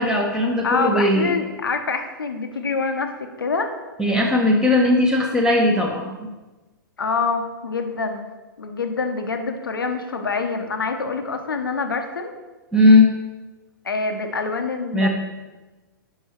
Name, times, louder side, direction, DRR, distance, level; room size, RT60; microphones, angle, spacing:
voice 1, 0.0-1.3 4.0-6.2 12.7-13.1 14.9-15.1, left 2 dB, 5° right, 0 dB, 0.9 m, -17 dB
voice 2, 0.6-3.1 3.4-3.7 7.0-8.3 8.6-12.3 13.8-15.1, left 4 dB, 75° left, 6 dB, 0.8 m, -25 dB
5.9 x 5.5 x 4.4 m, 1.2 s
figure-of-eight pair, 110°, 11 cm